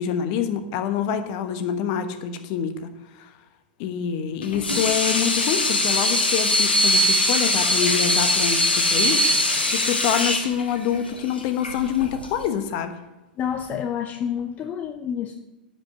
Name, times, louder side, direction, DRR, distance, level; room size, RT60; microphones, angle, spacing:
voice 1, 0.0-2.9 3.2-3.3 3.8-12.9, left 8 dB, 50° left, 9 dB, 1.2 m, -26 dB
Water tap faucet / Sink (filling or washing), 4.4-12.5, left 1 dB, 85° left, 1.7 m, -21 dB
voice 2, 13.4-15.4, left 8 dB, 30° left, 7 dB, 0.7 m, -28 dB
10.0 x 5.6 x 7.3 m, 1.1 s
figure-of-eight pair, 100°, 5 cm